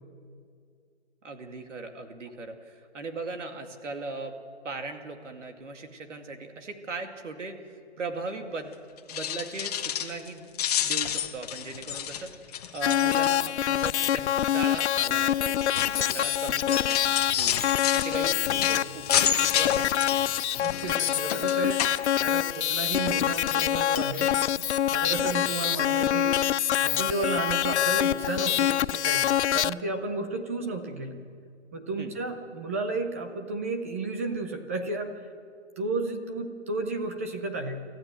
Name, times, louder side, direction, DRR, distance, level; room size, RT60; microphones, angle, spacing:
voice 1, 1.2-4.3 4.6-7.6 8.0-8.8 9.1-10.5 10.8-17.0 17.4-17.6 17.9-18.6 18.9-19.9 25.1-25.3 32.0-32.1, right 3 dB, 75° right, 5 dB, 2.4 m, -38 dB
sound 1, 9.0-10.3 10.5-13.7 14.0-14.4 15.1-22.6 22.9-23.7 23.9-24.1 24.6-24.7 25.0-25.1, left 9 dB, 30° left, 1.2 m, -31 dB
sound 2, 12.8-29.7, left 11 dB, 65° left, 0.5 m, -25 dB
voice 2, 18.6-19.0 20.6-21.8 22.2-24.3 24.6-26.4 26.8-31.2 31.7-35.1 35.8-37.8, right 3 dB, 10° right, 6 dB, 0.5 m, -33 dB
26.5 x 14.0 x 7.7 m, 2.3 s
hypercardioid pair, 155°, 36 cm